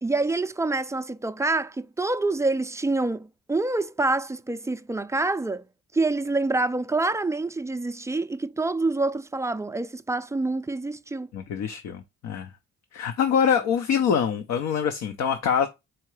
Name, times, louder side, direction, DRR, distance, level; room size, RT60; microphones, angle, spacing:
voice 1, 0.0-5.6 5.9-11.3, right 2 dB, 10° right, 0.4 m, -26 dB
voice 2, 11.3-12.5 12.9-15.7, left 7 dB, 65° left, 0.7 m, -24 dB
4.4 x 3.7 x 3.1 m
cardioid pair, 90°, 30 cm